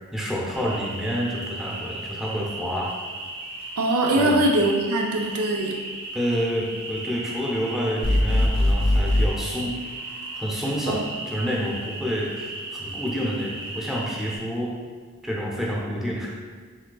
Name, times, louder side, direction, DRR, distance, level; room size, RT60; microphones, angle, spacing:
voice 1, 0.1-2.9 4.1-4.4 6.1-9.8 10.3-14.7 15.2-16.3, equal, ahead, -4 dB, 0.6 m, -28 dB
sound 1, 0.5-14.4, right 2 dB, 50° right, 1.1 m, -36 dB
voice 2, 3.8-5.8 10.9-11.0, right 1 dB, 90° right, 1 dB, 0.6 m, -22 dB
sound 2, 8.0-9.3, left 1 dB, 90° left, 0.6 m, -20 dB
5.0 x 3.8 x 2.3 m, 1.5 s
head